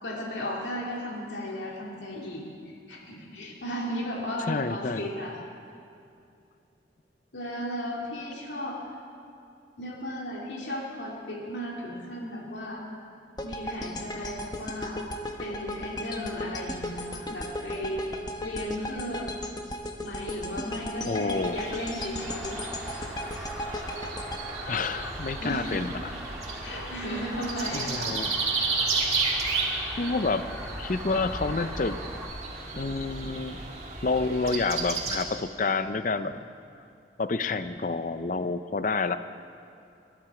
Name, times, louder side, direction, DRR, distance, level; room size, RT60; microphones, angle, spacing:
voice 1, 0.0-5.4 7.3-8.8 9.8-12.8 13.4-15.0 15.4-18.0 18.4-19.4 20.0-22.5 25.4-25.8 26.6-28.2, left 1 dB, 80° left, -2 dB, 2.4 m, -35 dB
voice 2, 4.5-5.1 21.1-21.6 24.7-26.2 27.7-28.3 30.0-30.5 30.8-32.0 32.7-33.6 34.0-36.4 37.2-39.2, left 3 dB, 45° left, 12 dB, 0.5 m, -28 dB
sound 1, 13.4-25.6, left 1 dB, 20° left, 0.9 m, -36 dB
sound 2, 21.3-35.2, right 3 dB, 35° right, 1.9 m, -33 dB
sound 3, 22.2-32.2, equal, 5° right, 1.8 m, -41 dB
21.0 x 12.0 x 4.9 m, 2.6 s
head